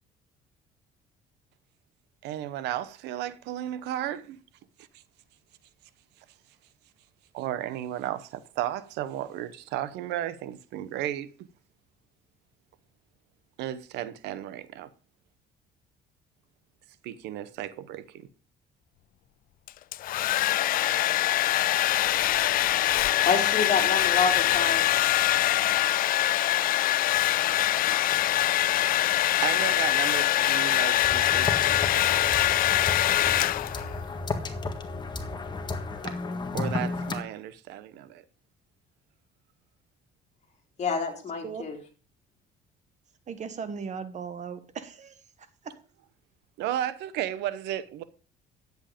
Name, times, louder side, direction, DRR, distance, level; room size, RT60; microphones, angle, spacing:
voice 1, 2.2-4.4 7.3-11.3 13.6-14.9 17.0-18.3 29.4-32.3 36.0-36.2 36.5-38.2 46.6-48.0, right 12 dB, 90° right, 0.9 m, -34 dB
Domestic sounds home sounds, 19.7-34.0, left 14 dB, 60° left, 0.4 m, -24 dB
voice 2, 23.2-24.9 40.8-41.8, left 5 dB, 40° left, 3.2 m, -27 dB
sound 1, 31.0-37.2, left 3 dB, 25° left, 1.6 m, -33 dB
voice 3, 41.1-41.6 43.3-45.2 45.6-45.8, right 6 dB, 45° right, 1.3 m, -38 dB
10.5 x 8.1 x 5.1 m
cardioid pair, 110°, 17 cm